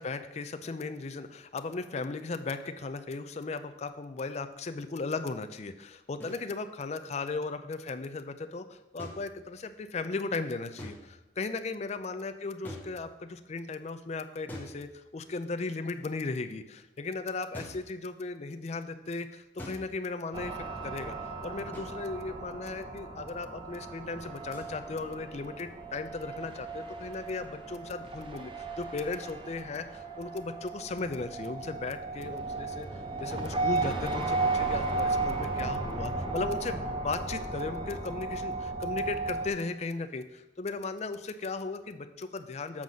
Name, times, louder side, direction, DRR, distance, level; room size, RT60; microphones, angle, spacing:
voice 1, 0.0-21.1 21.4-42.8, left 3 dB, 35° left, 9 dB, 0.4 m, -36 dB
sound 1, 6.2-6.5 9.0-9.8 10.8-11.4 12.6-13.4 14.5-15.3 17.5-18.0 19.6-20.1 21.7-22.2 24.5-24.7, left 1 dB, 10° left, 1.2 m, -45 dB
sound 2, 20.3-39.5, right 3 dB, 30° right, 0.7 m, -35 dB
7.2 x 3.9 x 6.2 m, 0.99 s
head